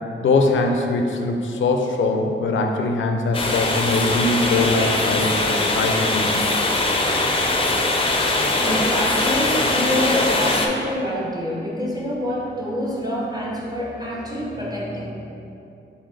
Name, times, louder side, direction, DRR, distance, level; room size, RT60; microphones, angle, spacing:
voice 1, 0.2-6.4, left 3 dB, 80° left, 3 dB, 0.5 m, -22 dB
sound 1, 3.3-10.7, left 2 dB, 30° left, 0.4 m, -21 dB
voice 2, 7.9-15.1, left 1 dB, 20° right, -4 dB, 0.7 m, -26 dB
4.0 x 3.9 x 3.2 m, 2.7 s
cardioid pair, 85°, 20 cm